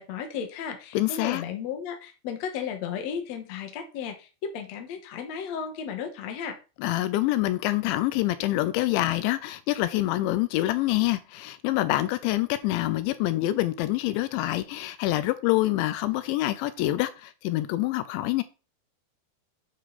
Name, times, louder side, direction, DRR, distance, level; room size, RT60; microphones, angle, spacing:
voice 1, 0.0-6.6, left 7 dB, 60° left, 1.8 m, -34 dB
voice 2, 0.9-1.4 6.8-18.4, left 16 dB, 80° left, 2.9 m, -26 dB
9.4 x 5.6 x 4.2 m
omnidirectional pair, 5.3 m